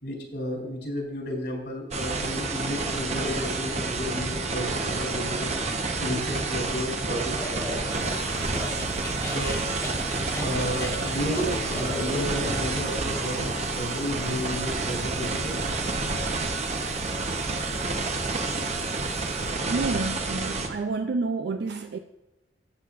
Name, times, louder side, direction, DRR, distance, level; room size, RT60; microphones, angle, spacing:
voice 1, 0.0-5.5 6.0-7.6 9.3-9.6 10.4-15.6, equal, 70° left, 0 dB, 3.2 m, -32 dB
sound 1, 1.9-20.7, right 3 dB, 40° right, 0.9 m, -29 dB
sound 2, 7.4-12.8, left 1 dB, 20° left, 1.4 m, -37 dB
sound 3, 7.9-19.5, right 1 dB, 90° right, 4.1 m, -41 dB
voice 2, 19.6-22.0, right 3 dB, 65° right, 7 dB, 0.4 m, -29 dB
15.0 x 8.4 x 2.5 m, 0.95 s
head